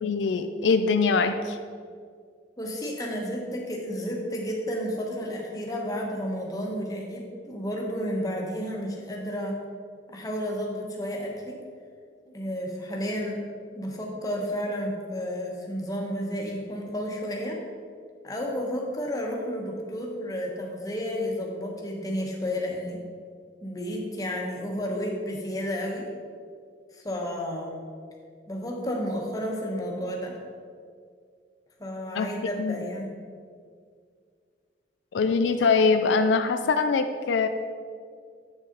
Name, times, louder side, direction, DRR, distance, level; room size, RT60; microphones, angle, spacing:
voice 1, 0.0-1.6 32.1-32.3 32.6-32.8 35.1-37.5, left 4 dB, 75° left, 8 dB, 0.4 m, -23 dB
voice 2, 2.6-9.6 10.1-11.6 12.3-13.4 13.7-17.6 18.2-23.0 23.6-26.1 26.9-27.8 28.5-30.4 31.8-33.1, equal, 20° left, 0 dB, 1.0 m, -31 dB
8.2 x 6.5 x 3.9 m, 2.1 s
head